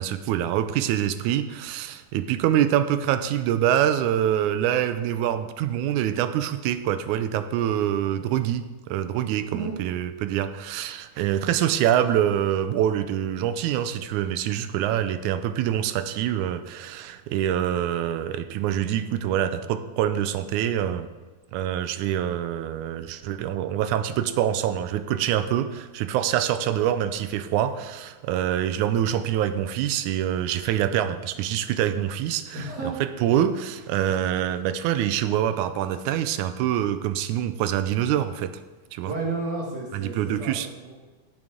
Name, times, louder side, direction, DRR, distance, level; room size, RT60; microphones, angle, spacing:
voice 1, 0.0-21.1 21.5-32.7 33.0-38.5 38.9-39.1 39.9-40.7, right 10 dB, 80° right, 11 dB, 1.9 m, -25 dB
voice 2, 32.5-33.0 39.0-40.9, right 3 dB, 35° right, -3 dB, 2.3 m, -32 dB
15.5 x 6.1 x 3.7 m, 1.3 s
omnidirectional pair, 3.5 m